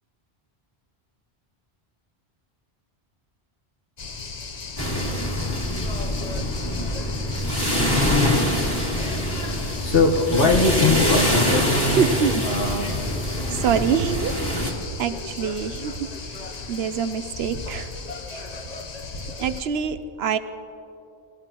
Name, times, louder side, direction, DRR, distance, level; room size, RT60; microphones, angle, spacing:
Crickets+chatter Split, 4.0-19.6, left 3 dB, 45° left, 0.9 m, -33 dB
sound 1, 4.8-14.7, equal, 20° left, 2.1 m, -25 dB
voice 1, 9.8-12.2 12.4-13.0, left 3 dB, 65° left, 2 dB, 1.6 m, -21 dB
voice 2, 11.9-12.4 13.5-14.7 15.0-16.1 16.7-17.9 18.3-18.4 19.4-20.4, right 7 dB, 80° right, 11 dB, 0.9 m, -25 dB
20.0 x 17.5 x 3.0 m, 2.7 s
omnidirectional pair, 1.0 m